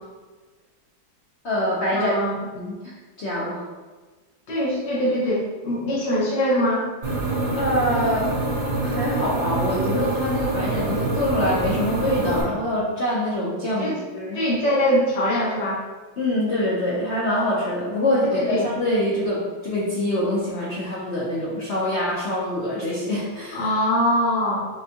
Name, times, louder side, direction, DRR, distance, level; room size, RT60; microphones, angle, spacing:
voice 1, 1.4-2.1 2.5-2.8 3.2-3.6 7.5-8.3 8.8-14.4 16.2-23.7, left 1 dB, 60° left, -7 dB, 0.7 m, -25 dB
voice 2, 2.0-2.3 4.5-6.9 13.8-14.0 14.3-15.8 18.3-18.7 23.5-24.7, equal, 85° left, -6 dB, 1.9 m, -22 dB
sound 1, 7.0-12.4, right 2 dB, 50° right, 1.5 m, -25 dB
6.0 x 2.3 x 2.8 m, 1.3 s
omnidirectional pair, 2.0 m